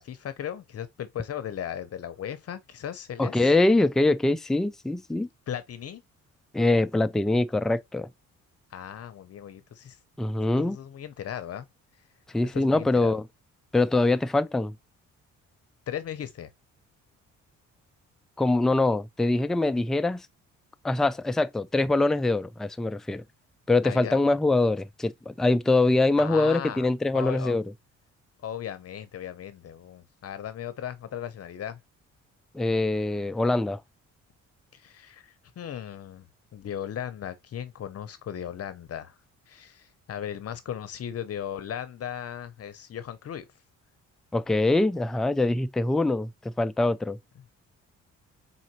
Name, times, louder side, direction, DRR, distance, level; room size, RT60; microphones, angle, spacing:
voice 1, 0.0-3.5 5.5-6.0 8.7-10.0 10.6-11.7 12.5-13.2 15.9-16.5 23.8-24.2 26.2-26.9 27.1-27.5 28.4-31.8 34.7-36.3 36.5-39.2 39.5-43.4, left 9 dB, 50° left, 0.7 m, -37 dB
voice 2, 3.2-5.3 6.5-8.1 10.2-10.8 12.3-13.2 13.7-14.7 18.4-20.3 20.8-23.2 23.7-27.6 32.5-33.8 44.3-46.3 46.6-47.2, left 2 dB, ahead, 0.3 m, -23 dB
4.1 x 3.8 x 2.9 m
cardioid pair, 90°, 30 cm